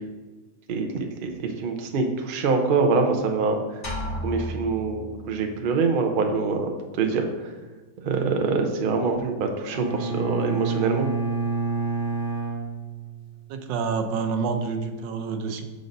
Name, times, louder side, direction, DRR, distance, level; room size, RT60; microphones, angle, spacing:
voice 1, 0.7-3.8 4.2-7.5 8.0-11.1, right 4 dB, 65° right, 4 dB, 0.5 m, -25 dB
sound 1, 3.8-5.7, left 1 dB, 30° left, 1.4 m, -33 dB
Bowed string instrument, 9.6-13.5, right 3 dB, 60° left, 2.8 m, -28 dB
voice 2, 13.5-15.6, right 5 dB, 85° right, 6 dB, 1.4 m, -28 dB
6.6 x 4.0 x 5.1 m, 1.3 s
omnidirectional pair, 1.9 m